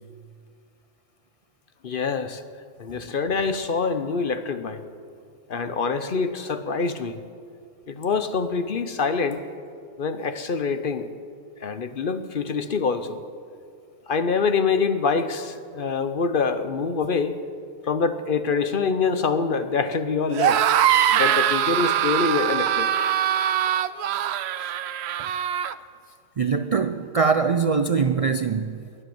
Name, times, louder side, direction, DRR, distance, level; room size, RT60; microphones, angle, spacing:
voice 1, 1.8-2.4 2.8-4.8 5.5-7.2 7.9-9.4 10.0-11.1 11.6-13.2 14.1-17.4 17.8-20.6 21.1-22.9 24.6-24.7, left 5 dB, 50° left, 10 dB, 0.9 m, -25 dB
sound 1, 20.3-25.8, right 10 dB, 70° right, 0.8 m, -22 dB
voice 2, 26.4-28.8, right 5 dB, 50° right, 9 dB, 0.4 m, -22 dB
22.5 x 7.9 x 7.8 m, 2.3 s
omnidirectional pair, 1.2 m